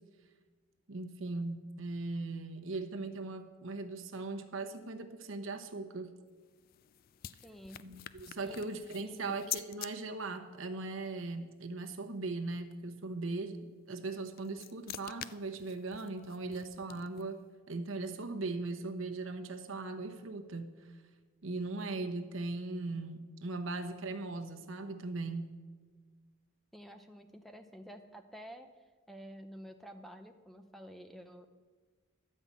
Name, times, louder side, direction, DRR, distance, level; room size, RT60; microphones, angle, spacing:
voice 1, 0.9-6.2 7.8-13.6 13.9-17.4 17.7-20.8 21.4-25.5, right 3 dB, 70° right, 6 dB, 0.9 m, -39 dB
sound 1, 6.3-9.9 14.1-17.4, left 13 dB, 45° left, 0.3 m, -46 dB
voice 2, 7.4-8.1 8.4-8.6 9.0-9.4 26.7-28.7 29.1-31.5, equal, ahead, 6 dB, 0.6 m, -50 dB
12.0 x 5.5 x 8.3 m, 1.4 s
head